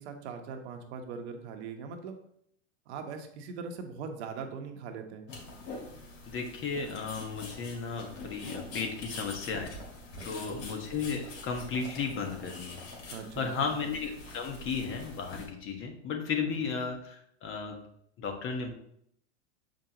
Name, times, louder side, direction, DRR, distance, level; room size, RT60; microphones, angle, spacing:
voice 1, 0.0-2.2 2.9-5.3 10.1-10.5 13.1-13.7, right 5 dB, 70° right, 5 dB, 1.2 m, -41 dB
sound 1, 5.3-15.5, left 2 dB, 55° left, 2.4 m, -45 dB
voice 2, 6.3-9.7 10.2-12.8 13.1-17.8 18.2-18.7, left 5 dB, 35° left, 3 dB, 1.3 m, -34 dB
sound 2, 9.5-10.7 11.1-11.2 11.8-12.0 13.4-13.8 15.3-15.5, left 3 dB, 70° left, 1.8 m, -50 dB
7.2 x 5.2 x 2.9 m, 0.69 s
supercardioid pair, 115°, 35 cm